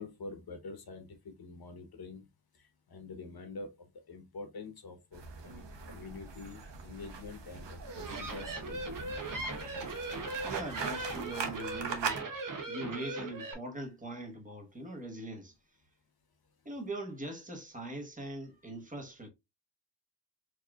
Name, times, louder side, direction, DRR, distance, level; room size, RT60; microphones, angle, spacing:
voice 1, 0.0-2.3 2.5-9.0, left 3 dB, 60° left, 1.1 m, -46 dB
sound 1, 5.1-12.2, right 5 dB, 85° right, 0.9 m, -41 dB
sound 2, 7.8-13.5, right 2 dB, 50° right, 0.9 m, -39 dB
voice 2, 10.4-12.2 12.7-15.5 16.6-19.3, right 1 dB, 20° right, 1.2 m, -41 dB
4.5 x 3.0 x 2.3 m
wide cardioid pair, 135°, 42 cm